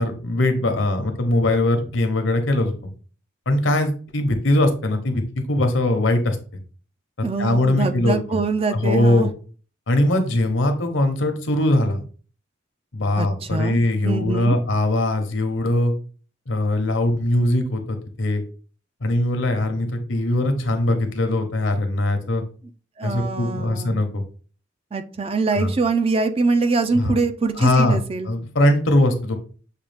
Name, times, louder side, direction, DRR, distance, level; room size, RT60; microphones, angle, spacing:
voice 1, 0.0-2.7 3.5-6.4 7.2-8.4 8.7-9.3 9.9-12.0 12.9-15.9 16.5-18.4 19.0-22.4 23.0-24.2 25.6-25.7 26.9-27.2 27.6-28.0 28.3-29.4, left 1 dB, 75° left, 6 dB, 0.9 m, -21 dB
voice 2, 7.2-9.3 13.2-14.6 23.0-24.0 24.9-28.3, right 4 dB, 30° right, 9 dB, 0.4 m, -24 dB
6.6 x 2.3 x 3.4 m, 0.39 s
head